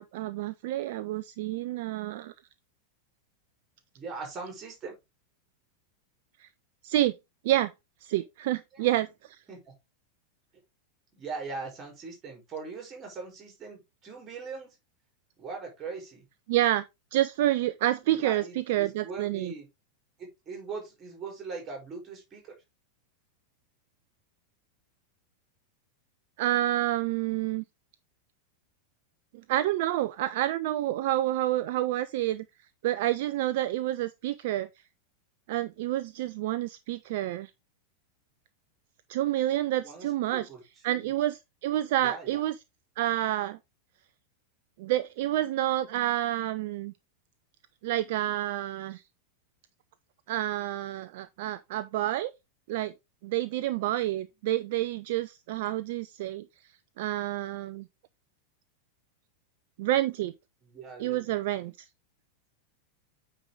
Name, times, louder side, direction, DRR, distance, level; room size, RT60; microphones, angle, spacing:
voice 1, 0.0-2.3 6.4-6.5 6.8-7.1 7.4-7.7 8.0-9.4 16.5-16.8 17.1-19.5 26.4-27.6 29.5-32.5 32.8-34.7 35.5-37.5 39.1-40.5 40.8-42.5 43.0-43.6 44.8-46.9 47.8-49.0 50.3-52.3 52.7-52.9 53.2-56.4 57.0-57.8 59.8-60.3 61.0-61.7, right 14 dB, 50° right, 0.4 m, -28 dB
voice 2, 3.9-4.9 8.7-8.9 9.5-9.7 11.2-14.8 15.4-16.2 18.2-19.7 20.2-22.4 39.8-40.6 40.9-41.1 42.0-42.4 60.6-61.7, right 4 dB, 25° right, 4.5 m, -41 dB
8.8 x 4.6 x 3.8 m
figure-of-eight pair, 90°, 0 cm